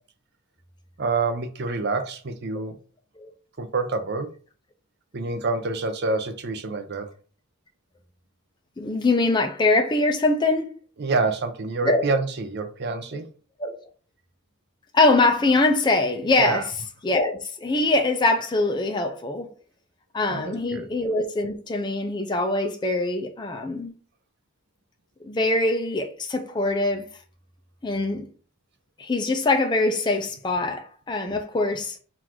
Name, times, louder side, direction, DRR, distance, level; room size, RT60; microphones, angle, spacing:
voice 1, 1.0-2.8 3.6-4.3 5.1-7.1 11.0-13.3 16.4-16.6 20.3-20.9, right 3 dB, 50° right, 0.6 m, -27 dB
voice 2, 8.8-10.7 11.8-12.0 13.6-13.7 14.9-16.6 17.0-19.5 20.1-23.9 25.2-27.1 27.8-28.3 29.0-32.0, left 2 dB, 20° left, 0.4 m, -23 dB
3.9 x 2.5 x 4.4 m
head